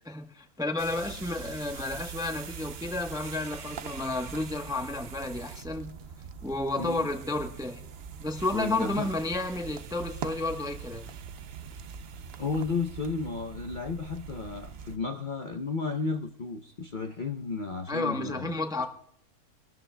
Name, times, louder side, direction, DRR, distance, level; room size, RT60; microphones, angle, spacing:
voice 1, 0.1-5.9 6.4-7.8 8.2-11.1 17.9-18.9, left 2 dB, 5° right, 5 dB, 0.7 m, -31 dB
sound 1, 0.8-15.0, right 7 dB, 55° right, 0.7 m, -42 dB
voice 2, 6.8-7.1 8.5-9.1 12.4-18.6, left 4 dB, 45° left, 4 dB, 0.7 m, -33 dB
27.5 x 13.0 x 2.2 m, 0.71 s
omnidirectional pair, 1.6 m